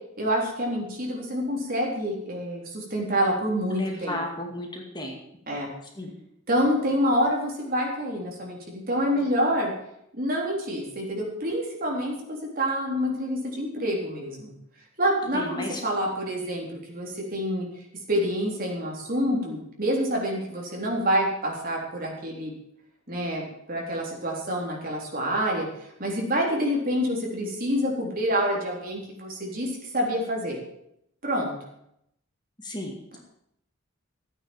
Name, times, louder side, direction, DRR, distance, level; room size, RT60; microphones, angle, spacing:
voice 1, 0.2-4.2 5.5-5.7 6.5-9.7 10.1-14.5 15.0-17.6 18.1-22.5 23.1-30.6 31.2-31.5, equal, 45° right, -1 dB, 3.9 m, -27 dB
voice 2, 3.7-5.2 6.0-6.1 15.3-15.8 32.6-33.2, left 1 dB, 20° left, 1 dB, 2.3 m, -34 dB
14.0 x 9.2 x 7.3 m, 0.76 s
head